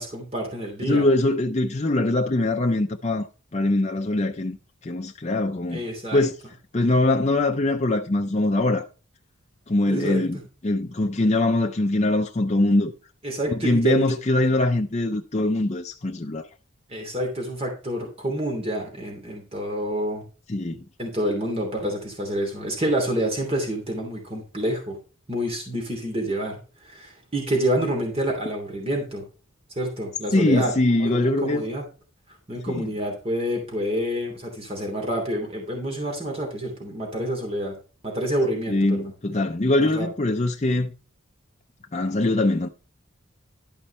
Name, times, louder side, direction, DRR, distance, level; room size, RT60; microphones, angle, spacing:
voice 1, 0.0-1.1 5.7-6.2 9.9-10.4 13.2-14.1 16.9-20.2 21.0-25.0 25.3-29.2 29.7-30.7 31.0-31.9 32.5-37.7 38.0-39.0 39.9-40.1, right 1 dB, 30° right, 2.8 m, -28 dB
voice 2, 0.9-3.3 3.5-4.6 4.8-5.8 6.1-6.3 6.7-8.9 9.7-12.9 13.5-16.5 20.5-20.8 30.3-31.6 32.7-32.9 38.7-40.9 41.9-42.7, left 2 dB, 30° left, 0.6 m, -22 dB
12.0 x 5.3 x 4.3 m
head